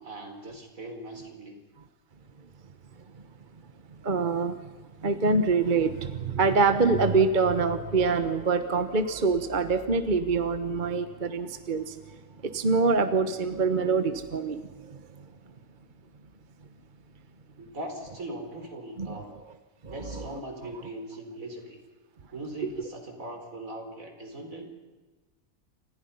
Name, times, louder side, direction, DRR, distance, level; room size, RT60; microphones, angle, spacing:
voice 1, 0.0-1.6 17.6-19.3 19.9-21.8 22.3-24.7, right 1 dB, 75° right, 4 dB, 4.6 m, -40 dB
voice 2, 4.0-4.7 5.0-12.0 12.4-14.6 19.0-19.2 19.8-20.3, right 4 dB, 35° right, 9 dB, 1.3 m, -25 dB
29.5 x 26.5 x 5.6 m, 1.2 s
omnidirectional pair, 1.4 m